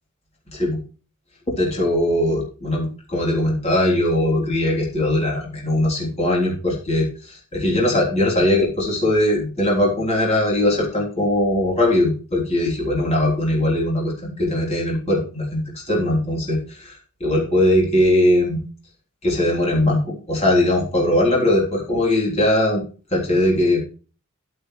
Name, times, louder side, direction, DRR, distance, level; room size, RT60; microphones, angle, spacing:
voice 1, 1.5-17.0 17.2-18.6 19.2-22.8 23.1-23.8, left 1 dB, 30° left, -3 dB, 3.6 m, -20 dB
10.5 x 10.0 x 3.3 m, 0.37 s
head